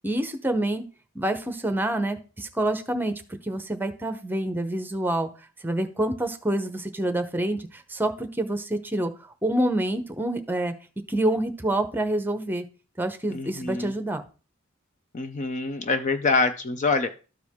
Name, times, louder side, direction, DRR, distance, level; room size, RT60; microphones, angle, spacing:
voice 1, 0.0-0.8 1.1-3.1 3.4-5.3 5.6-9.1 9.4-10.7 11.1-12.6 13.0-14.2, right 1 dB, 10° right, 8 dB, 0.8 m, -27 dB
voice 2, 13.3-13.9 15.1-17.1, left 3 dB, 35° left, 9 dB, 0.5 m, -25 dB
13.0 x 4.7 x 3.6 m, 0.35 s
head